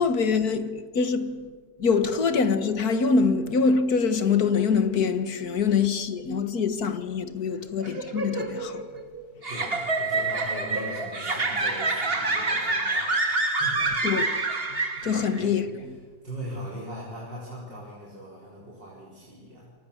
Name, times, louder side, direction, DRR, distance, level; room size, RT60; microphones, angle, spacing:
voice 1, 0.0-1.5 1.8-8.8 14.0-14.3 15.0-15.7, left 5 dB, 60° left, 2.1 m, -24 dB
sound 1, 7.8-15.4, right 3 dB, 35° right, 2.5 m, -27 dB
voice 2, 9.5-13.1 13.5-14.0 14.9-19.7, equal, 85° right, 5.3 m, -40 dB
29.0 x 24.5 x 7.3 m
omnidirectional pair, 1.9 m